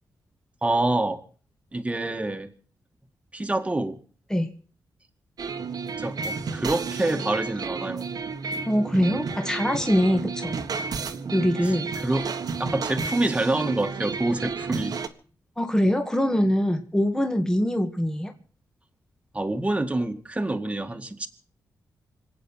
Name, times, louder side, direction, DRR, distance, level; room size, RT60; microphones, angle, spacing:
voice 1, 0.6-1.2 1.7-2.5 3.3-4.0 6.0-8.1 12.0-12.3 12.6-15.0 19.3-21.3, right 2 dB, 15° right, 6 dB, 2.1 m, -26 dB
sound 1, 5.4-15.1, right 5 dB, 60° right, 1.5 m, -32 dB
voice 2, 8.7-10.6 11.3-11.9 15.6-18.3, equal, 10° left, 5 dB, 2.0 m, -23 dB
26.0 x 8.7 x 5.8 m, 0.43 s
cardioid pair, 85°, 7 cm